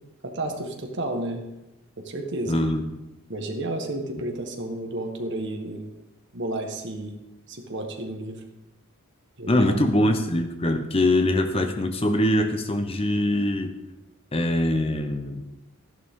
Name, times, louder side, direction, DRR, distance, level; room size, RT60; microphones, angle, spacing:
voice 1, 0.2-1.5 2.0-2.6 3.3-5.9 6.3-7.2 7.5-8.4 9.4-9.8, right 1 dB, 55° right, 3 dB, 1.5 m, -31 dB
voice 2, 2.5-2.9 9.5-13.7 14.3-15.4, left 1 dB, 25° left, 7 dB, 0.9 m, -23 dB
12.5 x 11.0 x 3.8 m, 0.97 s
head